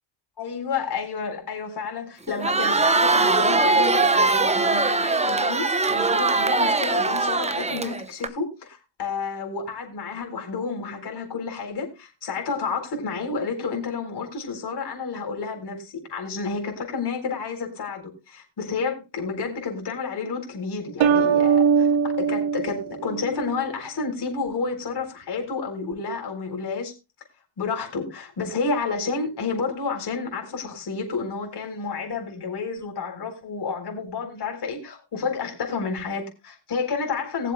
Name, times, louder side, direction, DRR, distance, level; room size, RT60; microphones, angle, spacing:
voice 1, 0.4-26.9 27.6-37.5, left 4 dB, 50° left, 4.1 m, -30 dB
Crowd, 2.3-8.3, right 3 dB, 15° right, 0.8 m, -21 dB
sound 1, 21.0-23.6, right 6 dB, 65° right, 1.1 m, -21 dB
21.5 x 7.4 x 2.2 m
cardioid pair, 105°, 50 cm